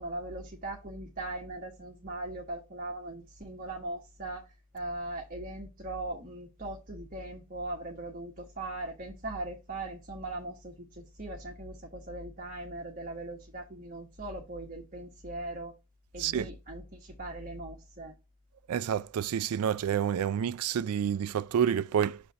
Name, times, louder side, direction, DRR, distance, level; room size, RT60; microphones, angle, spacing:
voice 1, 0.0-15.7 16.1-18.1, right 2 dB, 40° right, 1.3 m, -39 dB
voice 2, 16.2-16.5 18.7-22.2, right 8 dB, 85° right, 0.4 m, -29 dB
6.1 x 4.1 x 5.6 m
head